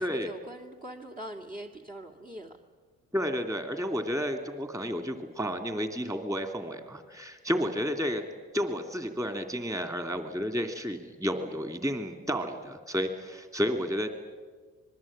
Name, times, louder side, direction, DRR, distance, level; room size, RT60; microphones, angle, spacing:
voice 1, 0.0-2.6, right 1 dB, 30° right, 1 dB, 2.4 m, -42 dB
voice 2, 3.1-8.2 8.5-14.1, equal, 10° right, 6 dB, 2.8 m, -31 dB
26.0 x 21.0 x 8.8 m, 1.5 s
cardioid pair, 90°, 30 cm